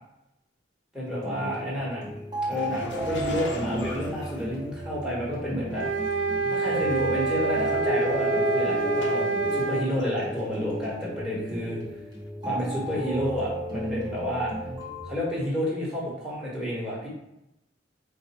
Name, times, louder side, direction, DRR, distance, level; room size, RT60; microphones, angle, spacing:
voice 1, 0.9-2.0 2.5-5.8 6.5-11.8 12.4-14.5 15.1-17.1, equal, 5° right, -6 dB, 1.3 m, -30 dB
sound 1, 1.0-15.1, equal, 20° right, 0.9 m, -33 dB
sound 2, 2.6-5.1 6.0-6.1 7.0-7.1 7.3-7.6 8.2-9.6 10.0-10.6 10.8-10.9 12.1-12.2, left 2 dB, 65° left, 0.5 m, -41 dB
sound 3, 5.7-9.9, right 4 dB, 65° right, 0.5 m, -27 dB
4.6 x 2.0 x 4.3 m, 0.87 s
head